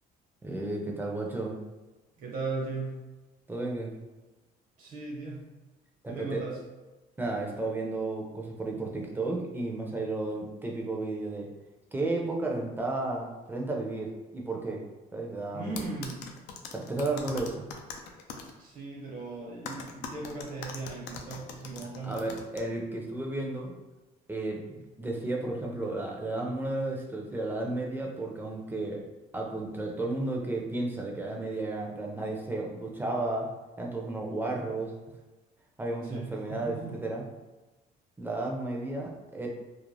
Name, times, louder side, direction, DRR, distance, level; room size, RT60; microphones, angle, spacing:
voice 1, 0.4-1.6 3.5-3.9 6.0-6.4 7.2-11.5 11.9-14.8 15.1-15.9 16.7-17.6 22.0-23.7 24.3-29.0 29.3-33.5 33.8-34.9 35.8-37.2 38.2-39.5, right 2 dB, 10° right, -1 dB, 0.5 m, -33 dB
voice 2, 2.2-3.0 4.8-5.5 6.1-6.6 15.5-16.3 18.6-22.3 36.1-36.9, right 3 dB, 55° right, -3 dB, 1.0 m, -37 dB
sound 1, 15.8-18.5 19.7-22.6, left 5 dB, 85° left, 0.4 m, -41 dB
2.5 x 2.0 x 3.1 m, 1.1 s
cardioid pair, 110°, 17 cm